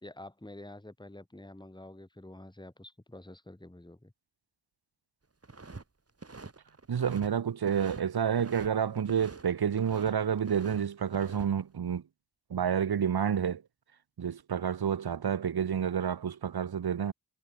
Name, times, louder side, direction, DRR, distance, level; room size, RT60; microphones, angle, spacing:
voice 1, 0.0-4.1, left 1 dB, 10° left, 2.6 m, -48 dB
sound 1, 5.4-5.8 6.1-7.3 7.6-8.7 9.0-10.1 10.4-11.5, right 3 dB, 30° right, 2.2 m, -47 dB
voice 2, 6.9-12.0 12.5-13.6 14.2-17.1, right 8 dB, 55° right, 1.1 m, -29 dB
cardioid pair, 40°, 46 cm